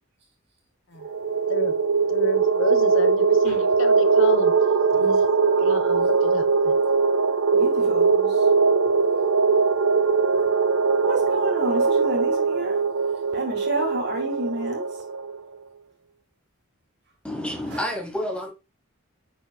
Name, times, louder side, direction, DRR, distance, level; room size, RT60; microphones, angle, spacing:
sound 1, 1.0-15.4, right 4 dB, 80° right, 0.6 m, -21 dB
voice 1, 2.1-4.5 5.6-6.7, left 3 dB, 65° left, 0.9 m, -31 dB
voice 2, 7.5-8.5 11.0-12.8 13.3-14.9 17.7-17.8, right 1 dB, 50° right, 2.9 m, -30 dB
voice 3, 17.2-18.5, left 1 dB, 5° left, 1.1 m, -29 dB
8.7 x 5.1 x 2.3 m
head